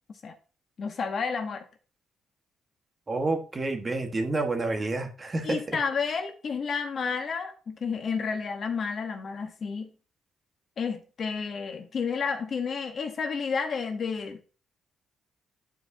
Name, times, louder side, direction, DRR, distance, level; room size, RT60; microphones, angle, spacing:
voice 1, 0.8-1.6 5.4-9.9 10.8-14.5, left 5 dB, 50° left, 5 dB, 1.1 m, -31 dB
voice 2, 3.1-5.6, right 2 dB, 30° right, 5 dB, 1.4 m, -29 dB
11.0 x 4.6 x 2.7 m, 0.36 s
cardioid pair, 90°, 0 cm